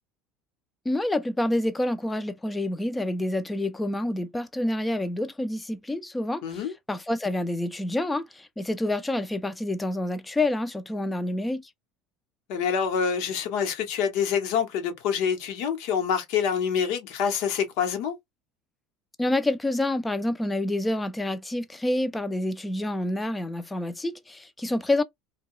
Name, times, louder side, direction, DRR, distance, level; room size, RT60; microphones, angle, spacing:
voice 1, 0.9-6.4 6.9-11.7 19.2-25.0, left 1 dB, 10° left, 0.4 m, -28 dB
voice 2, 6.4-6.7 12.5-18.2, left 7 dB, 70° left, 1.0 m, -26 dB
2.2 x 2.2 x 3.6 m
supercardioid pair, 115°, 0 cm